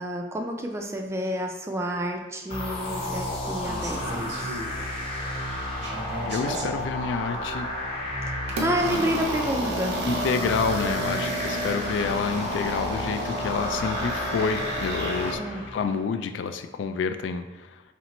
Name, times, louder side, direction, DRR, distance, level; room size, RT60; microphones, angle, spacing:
voice 1, 0.0-4.6 8.3-10.1 15.3-15.6, equal, 15° right, 3 dB, 0.3 m, -30 dB
sound 1, 2.5-16.0, left 1 dB, 35° left, 0.7 m, -32 dB
sound 2, 3.6-5.1 5.5-6.8 7.5-7.7 8.5-15.4, right 1 dB, 65° right, 0.6 m, -33 dB
voice 2, 6.3-7.7 10.0-15.4 15.7-17.8, left 5 dB, 80° left, 9 dB, 0.3 m, -28 dB
4.2 x 3.2 x 2.9 m, 1.1 s
head